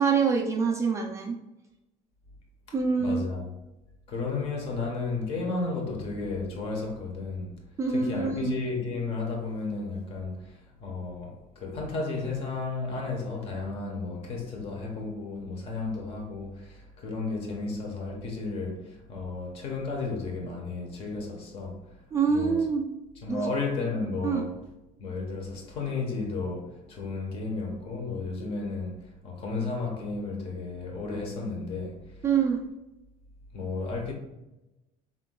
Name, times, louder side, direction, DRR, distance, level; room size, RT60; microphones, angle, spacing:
voice 1, 0.0-1.3 2.7-3.3 7.8-8.6 22.1-22.9 23.3-23.5 24.2-24.4 32.2-32.6, right 5 dB, 20° right, 0.4 m, -25 dB
voice 2, 2.7-3.5 4.1-7.6 7.9-22.0 22.3-22.7 23.2-24.6 25.0-32.2 33.5-34.1, left 3 dB, 40° left, 1.1 m, -33 dB
5.9 x 3.7 x 2.3 m
cardioid pair, 180°, 15 cm